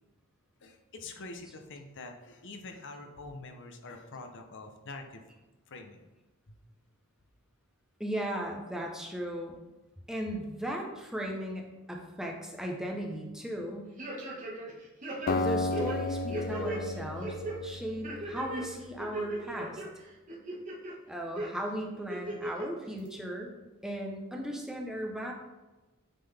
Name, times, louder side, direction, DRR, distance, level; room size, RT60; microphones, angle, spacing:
voice 1, 0.6-5.2 5.7-6.0 6.5-6.6, left 3 dB, 60° left, 5 dB, 0.7 m, -45 dB
voice 2, 8.0-9.6 10.1-13.9 15.3-19.8 21.1-23.5 23.8-25.3, equal, 5° right, 0 dB, 0.8 m, -37 dB
sound 1, 14.0-14.7 15.0-16.8 17.2-17.6 18.0-18.6 19.0-19.9 20.3-20.9 21.4-21.5 22.1-22.7 23.1-23.2, right 1 dB, 35° right, 1.4 m, -36 dB
Acoustic guitar, 15.3-18.4, left 3 dB, 45° left, 0.3 m, -33 dB
8.9 x 3.8 x 3.4 m, 1.1 s
head